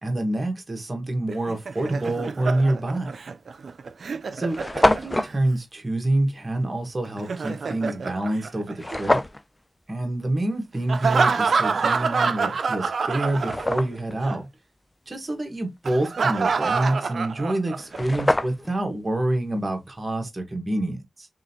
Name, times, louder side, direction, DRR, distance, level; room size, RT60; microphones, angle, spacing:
voice 1, 0.0-3.1 4.3-9.2 9.9-14.5 15.1-21.3, right 1 dB, 35° right, 1.4 m, -27 dB
Laughter, 1.3-5.4 7.0-9.2 10.9-14.0 14.2-14.4 15.9-18.0, right 5 dB, 80° right, 0.4 m, -26 dB
Rolling bag out, 3.0-3.2 3.9-4.0 4.2-4.3 4.5-5.3 8.8-9.4 12.4-12.5 13.0-14.2 17.5-17.6 17.8-18.8, left 1 dB, 25° left, 0.4 m, -25 dB
3.7 x 3.3 x 2.8 m
cardioid pair, 50°, 0 cm